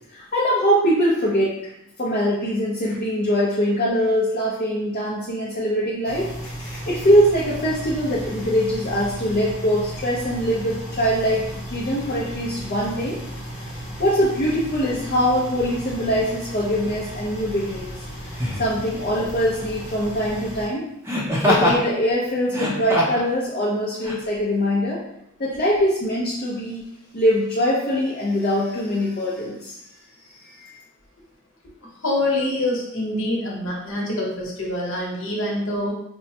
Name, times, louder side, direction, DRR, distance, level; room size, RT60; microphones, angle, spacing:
voice 1, 0.1-1.5 2.0-6.3 6.9-13.2 14.0-17.9 18.6-20.9 21.4-25.0 25.4-26.8 27.1-29.8 30.5-30.7, equal, 40° left, -6 dB, 0.6 m, -22 dB
sound 1, 6.0-20.7, equal, 20° left, 1.1 m, -35 dB
Laughter, 16.8-17.0 18.3-18.7 21.1-21.8 22.5-23.3 24.0-24.2, left 1 dB, 10° right, 0.6 m, -22 dB
voice 2, 32.0-35.9, left 1 dB, 65° left, -3 dB, 1.0 m, -25 dB
4.4 x 2.1 x 2.8 m, 0.80 s
head